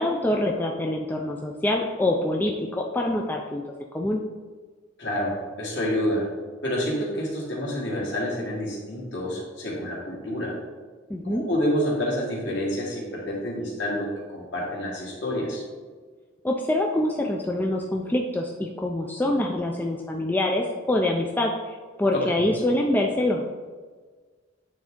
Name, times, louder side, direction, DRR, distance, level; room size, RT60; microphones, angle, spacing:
voice 1, 0.0-4.2 11.1-11.4 16.4-23.4, left 1 dB, 10° left, 0 dB, 0.3 m, -25 dB
voice 2, 5.0-6.3 6.6-10.5 11.2-15.6 22.1-22.5, equal, 60° left, -3 dB, 1.7 m, -28 dB
8.4 x 3.6 x 3.7 m, 1.4 s
head